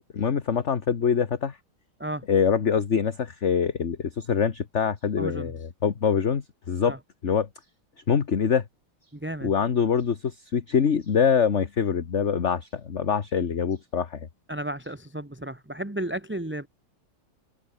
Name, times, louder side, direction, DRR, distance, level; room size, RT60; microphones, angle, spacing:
voice 1, 0.0-1.6 2.3-7.0 7.2-7.5 8.1-8.6 9.4-14.3, left 7 dB, 40° left, 1.4 m, -24 dB
voice 2, 5.2-5.5 6.8-7.0 9.1-9.5 14.5-16.7, right 1 dB, 5° right, 1.5 m, -33 dB
omnidirectional pair, 2.3 m